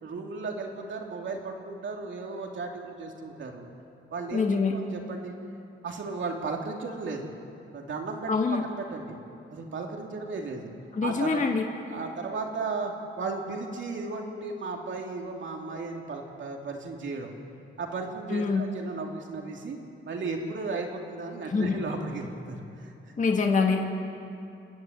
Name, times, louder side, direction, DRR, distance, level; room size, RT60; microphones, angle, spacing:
voice 1, 0.0-3.7 4.1-4.4 4.7-5.3 5.8-7.3 7.7-8.3 8.6-9.2 9.5-10.7 11.0-11.4 11.9-17.3 17.8-19.8 20.0-22.9, right 3 dB, 65° right, 1 dB, 3.0 m, -35 dB
voice 2, 4.3-4.8 8.3-8.6 10.9-11.6 18.3-18.7 21.5-21.8 23.2-23.8, left 4 dB, 35° left, 2 dB, 1.9 m, -25 dB
29.0 x 11.0 x 9.3 m, 2.6 s
cardioid pair, 100°, 21 cm